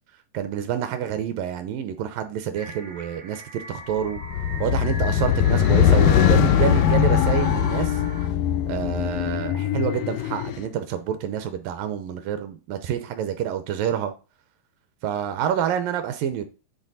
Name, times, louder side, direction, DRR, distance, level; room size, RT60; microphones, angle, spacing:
voice 1, 0.3-4.2 4.6-8.0 8.7-14.1 15.0-16.4, right 9 dB, 80° right, 2.2 m, -28 dB
sound 1, 2.5-8.3, left 1 dB, 50° right, 0.5 m, -38 dB
sound 2, 4.1-10.6, left 9 dB, 85° left, 1.9 m, -21 dB
9.9 x 4.2 x 4.0 m
omnidirectional pair, 4.4 m